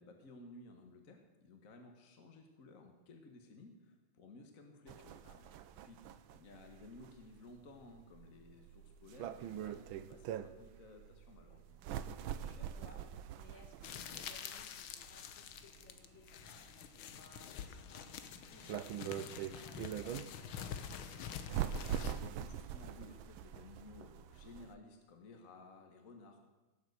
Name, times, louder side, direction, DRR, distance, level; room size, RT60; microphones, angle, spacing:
voice 1, 0.0-5.2 5.8-6.0 6.3-11.8 22.2-26.4, left 3 dB, 45° left, 4 dB, 1.7 m, -56 dB
sound 1, 4.9-24.7, right 9 dB, 85° right, 1.5 m, -44 dB
voice 2, 5.2-5.8 12.3-21.2, left 3 dB, 65° left, 2 dB, 2.8 m, -62 dB
sound 2, 13.8-22.2, left 8 dB, 90° left, 1.8 m, -47 dB
17.0 x 7.4 x 8.1 m, 1.1 s
omnidirectional pair, 2.2 m